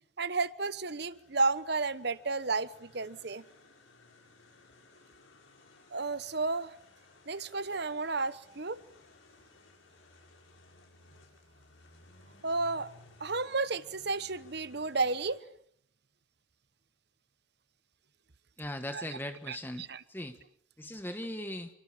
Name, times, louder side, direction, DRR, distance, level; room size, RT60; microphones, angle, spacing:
voice 1, 0.2-3.4 5.9-6.7 7.3-8.8 12.4-12.9 13.2-15.4 18.9-19.0 19.5-20.0, right 3 dB, 55° right, 15 dB, 1.1 m, -32 dB
sound 1, 0.7-15.4, left 2 dB, 75° left, 7.6 m, -59 dB
voice 2, 18.6-20.4 20.8-21.7, left 1 dB, 10° left, 8 dB, 1.3 m, -39 dB
28.5 x 24.5 x 7.4 m, 0.69 s
head